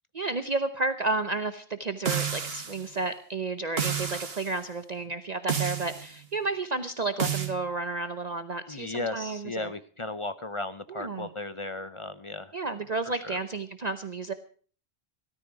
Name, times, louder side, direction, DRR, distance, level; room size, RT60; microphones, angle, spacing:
voice 1, 0.1-9.7 10.9-11.3 12.5-14.3, right 3 dB, 40° right, 10 dB, 0.9 m, -32 dB
sound 1, 2.1-2.8 3.8-4.5 5.5-6.1 7.2-7.5, right 7 dB, 65° right, 1.8 m, -30 dB
voice 2, 8.7-12.5 13.1-13.4, left 2 dB, 35° left, 13 dB, 0.7 m, -35 dB
17.5 x 13.0 x 4.8 m, 0.43 s
omnidirectional pair, 1.1 m